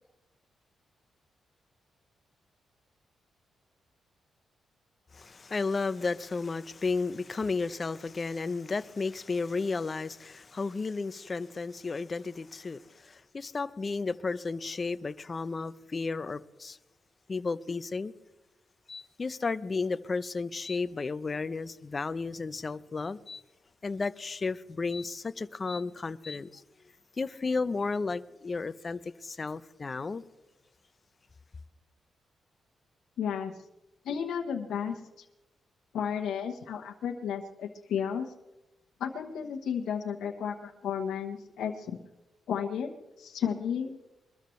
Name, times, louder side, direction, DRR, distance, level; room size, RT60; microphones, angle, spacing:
voice 1, 5.1-16.8 17.3-18.1 18.9-23.4 23.8-26.6 27.2-30.2, left 4 dB, 35° left, 0.7 m, -33 dB
voice 2, 33.2-33.5 34.0-35.2 35.9-38.3 39.0-41.9 42.5-42.9 43.2-44.0, left 7 dB, 85° left, 1.1 m, -33 dB
22.5 x 13.5 x 3.2 m
cardioid pair, 75°, 0 cm